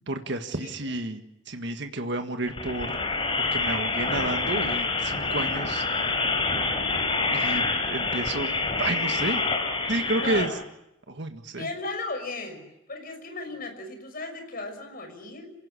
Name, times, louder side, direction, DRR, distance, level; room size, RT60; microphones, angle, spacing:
voice 1, 0.1-1.2 1.5-2.9 3.4-5.8 7.3-8.5 8.8-9.4 9.9-10.5 11.1-11.7, right 2 dB, 60° right, 6 dB, 1.7 m, -30 dB
sound 1, 2.5-10.4, left 3 dB, 25° left, 4.4 m, -27 dB
voice 2, 10.1-10.6 11.5-12.6 12.9-15.5, left 2 dB, 50° left, 5 dB, 6.2 m, -35 dB
27.5 x 18.0 x 9.8 m, 0.89 s
head